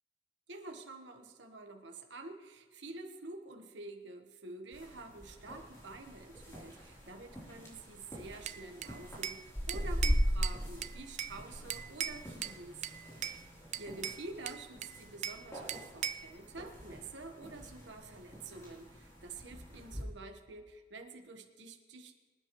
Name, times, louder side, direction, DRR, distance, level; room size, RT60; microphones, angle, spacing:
voice 1, 0.5-12.8 13.0-22.2, right 2 dB, 65° right, 4 dB, 1.3 m, -48 dB
sound 1, 4.7-20.0, equal, 15° left, 3.6 m, -40 dB
Bell / Glass, 8.5-9.4 9.7-11.4 11.7-12.6 12.8-13.4 13.7-15.4 15.7-16.3, right 10 dB, 40° right, 0.4 m, -39 dB
24.5 x 9.4 x 3.2 m, 1.4 s
head